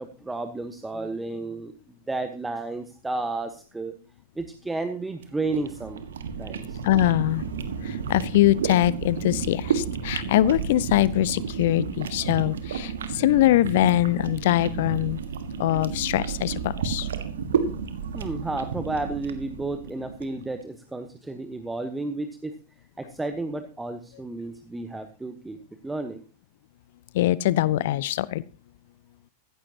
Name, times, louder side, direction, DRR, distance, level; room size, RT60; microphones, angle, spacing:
voice 1, 0.0-1.7 2.1-3.9 4.3-6.0 6.4-6.8 18.1-22.6 23.0-25.6 25.8-26.2, right 2 dB, 10° right, 8 dB, 1.2 m, -32 dB
sound 1, 5.2-20.4, right 6 dB, 65° right, 1.6 m, -32 dB
voice 2, 6.8-7.4 7.8-15.2 15.6-17.1 27.1-28.4, left 14 dB, 55° left, 21 dB, 0.5 m, -23 dB
16.0 x 15.0 x 2.9 m, 0.36 s
figure-of-eight pair, 90°, 0 cm